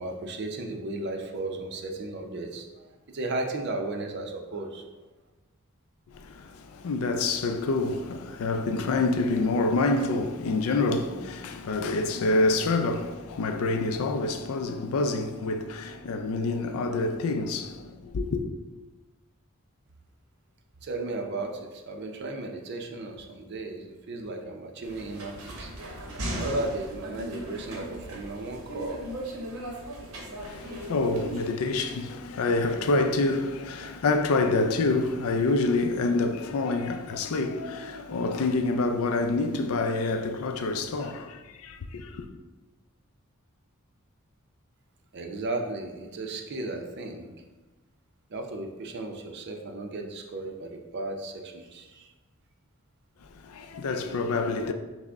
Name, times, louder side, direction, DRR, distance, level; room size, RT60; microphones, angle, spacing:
voice 1, 0.0-4.9 20.8-25.7 26.3-29.0 45.1-47.3 48.3-52.1, right 2 dB, 50° right, 0.5 m, -35 dB
voice 2, 6.1-18.4 30.4-42.3 53.4-54.7, left 3 dB, 80° left, 0.4 m, -27 dB
sound 1, 24.8-31.5, right 1 dB, 90° right, 0.9 m, -37 dB
5.9 x 2.1 x 3.4 m
head